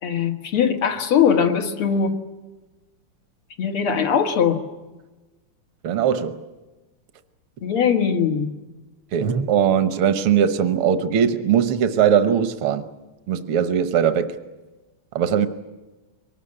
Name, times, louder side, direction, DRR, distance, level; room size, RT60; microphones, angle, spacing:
voice 1, 0.0-2.2 3.6-4.6 7.6-8.5, left 7 dB, 80° left, 2.6 m, -20 dB
voice 2, 5.8-6.4 9.1-12.9 13.3-14.4 15.1-15.5, right 8 dB, 75° right, 1.9 m, -20 dB
23.5 x 19.5 x 9.9 m
omnidirectional pair, 2.4 m